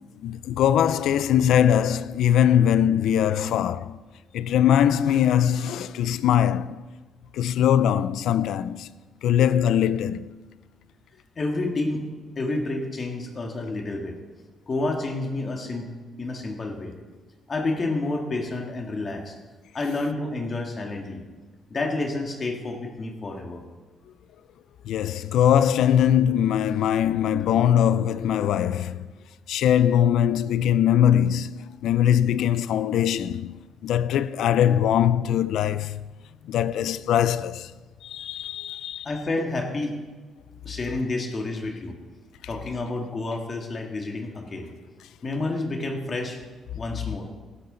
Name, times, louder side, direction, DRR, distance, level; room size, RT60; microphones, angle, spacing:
voice 1, 0.2-4.0 4.3-6.8 7.3-8.9 9.2-10.3 24.9-29.1 29.5-33.5 33.8-36.0 36.4-37.7 38.0-39.1, left 10 dB, 80° left, 0.5 m, -21 dB
voice 2, 11.4-12.1 12.4-14.2 14.7-15.9 16.2-16.9 17.5-19.4 19.7-21.2 21.7-23.6 39.0-40.0 40.6-42.0 42.5-44.7 45.2-46.4 46.8-47.3, left 2 dB, 35° left, 1.8 m, -29 dB
15.0 x 13.0 x 4.0 m
cardioid pair, 120°, 0 cm